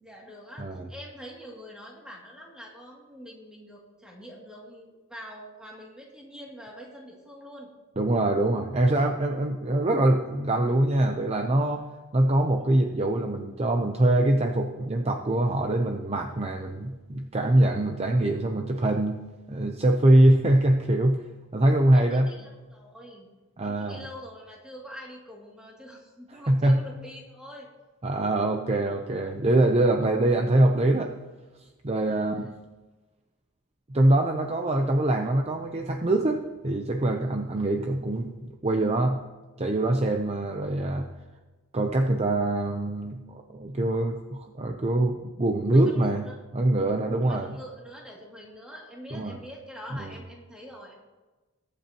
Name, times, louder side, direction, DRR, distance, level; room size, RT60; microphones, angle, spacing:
voice 1, 0.0-7.7 12.6-12.8 20.1-20.2 21.9-23.3 23.6-27.7 32.0-32.2 45.7-46.3 47.2-51.1, equal, 5° right, -3 dB, 2.5 m, -45 dB
voice 2, 8.0-11.9 12.1-19.2 19.5-21.2 21.5-22.3 23.6-24.0 26.5-26.8 28.0-31.1 31.8-32.5 33.9-39.2 39.6-41.1 41.7-46.3 46.5-47.5 49.1-49.3 49.9-50.1, right 1 dB, 30° right, 3 dB, 0.7 m, -23 dB
21.5 x 8.4 x 3.0 m, 1.2 s
head